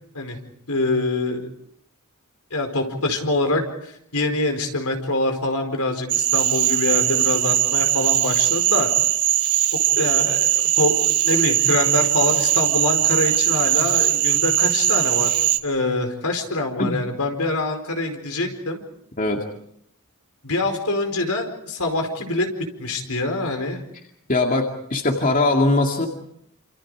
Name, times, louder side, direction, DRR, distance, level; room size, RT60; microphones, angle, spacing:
voice 1, 0.7-1.5 2.5-8.9 9.7-18.8 20.4-23.8, left 2 dB, 75° left, 5 dB, 4.8 m, -25 dB
Cricket / Frog, 6.1-15.6, right 13 dB, 80° right, 1.3 m, -20 dB
voice 2, 24.3-26.1, left 2 dB, 40° left, 2 dB, 2.3 m, -20 dB
29.0 x 28.0 x 5.0 m, 0.71 s
head